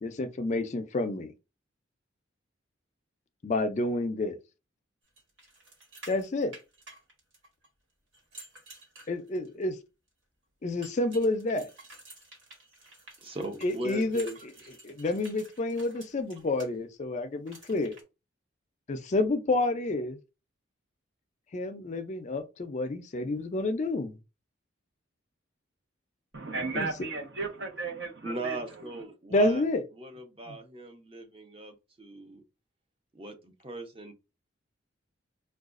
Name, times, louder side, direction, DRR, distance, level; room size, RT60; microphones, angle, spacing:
voice 1, 0.0-1.3 3.4-4.4 6.1-6.6 9.1-9.8 10.6-11.7 13.6-14.3 14.8-18.0 18.9-20.2 21.5-24.2 26.7-26.9 29.3-29.8 30.5-30.6, left 2 dB, 35° left, 0.4 m, -29 dB
sound 1, 5.2-7.7 8.1-9.6 10.8-16.7 17.5-18.0, right 2 dB, 85° right, 1.5 m, -51 dB
voice 2, 13.2-14.4 28.2-29.6 29.9-32.4 33.1-34.1, right 2 dB, 30° right, 0.6 m, -39 dB
voice 3, 26.3-28.6, right 3 dB, 60° right, 0.9 m, -34 dB
4.7 x 2.3 x 2.4 m
head